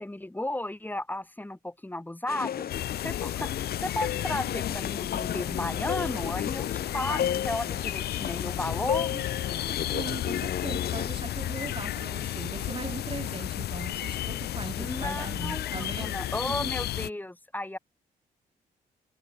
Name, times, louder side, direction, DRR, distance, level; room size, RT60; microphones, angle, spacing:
voice 1, 0.0-9.2 14.8-17.8, left 1 dB, 10° left, 5.6 m, -34 dB
sound 1, 2.3-11.1, left 9 dB, 70° left, 3.1 m, -34 dB
sound 2, 2.7-17.1, left 13 dB, 90° left, 1.1 m, -33 dB
voice 2, 9.1-16.2 16.5-16.7, right 4 dB, 35° right, 3.2 m, -39 dB
cardioid pair, 85°, 16 cm